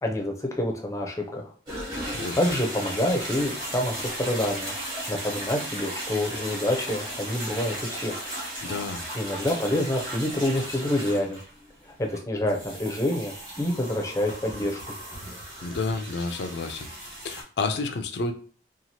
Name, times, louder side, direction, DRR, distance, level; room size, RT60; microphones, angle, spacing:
voice 1, 0.0-1.5 2.3-4.7 5.1-8.2 9.1-11.4 12.0-14.8, left 1 dB, 15° left, 1 dB, 0.5 m, -27 dB
sound 1, 1.7-17.4, right 1 dB, 25° right, 1.1 m, -36 dB
voice 2, 8.6-9.0 15.6-16.9 17.2-18.3, left 3 dB, 70° left, 7 dB, 0.4 m, -30 dB
2.9 x 2.4 x 2.7 m, 0.41 s
head